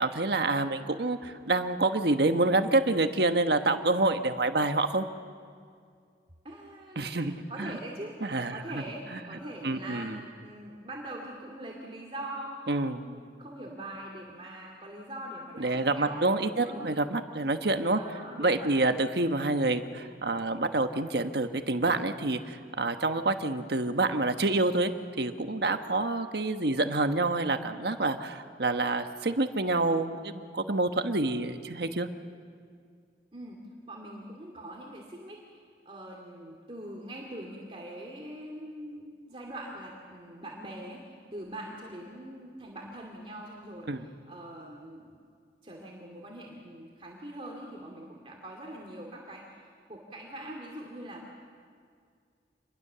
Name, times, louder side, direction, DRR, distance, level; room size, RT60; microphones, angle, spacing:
voice 1, 0.0-5.1 7.0-7.7 8.2-8.6 9.1-9.4 9.6-10.2 12.7-13.0 15.6-18.0 18.4-24.9 25.2-32.1 43.9-44.0, right 2 dB, 70° right, 7 dB, 1.3 m, -27 dB
voice 2, 6.4-17.0 17.9-18.9 33.3-33.6 33.9-35.4 35.8-45.1 45.6-51.2, right 1 dB, 30° right, -1 dB, 2.6 m, -43 dB
27.5 x 21.5 x 6.9 m, 2.2 s
head